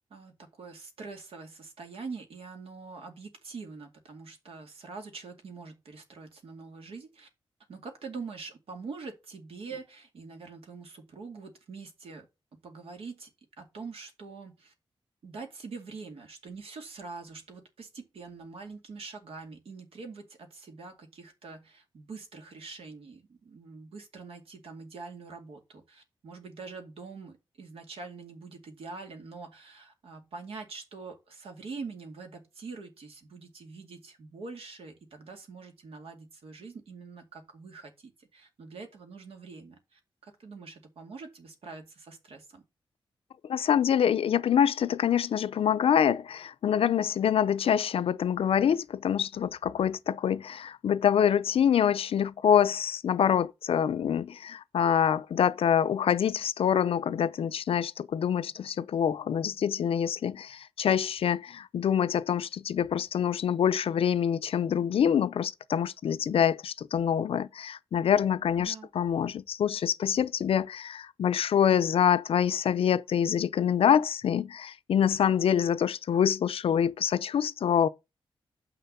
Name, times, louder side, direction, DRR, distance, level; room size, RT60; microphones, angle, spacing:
voice 1, 0.1-7.3 7.7-12.3 12.5-13.3 13.6-14.7 15.2-42.6 68.6-68.9, right 4 dB, 80° right, 2.3 m, -44 dB
voice 2, 43.5-77.9, left 8 dB, 75° left, 0.5 m, -26 dB
7.3 x 5.9 x 5.4 m
wide cardioid pair, 115°, 10 cm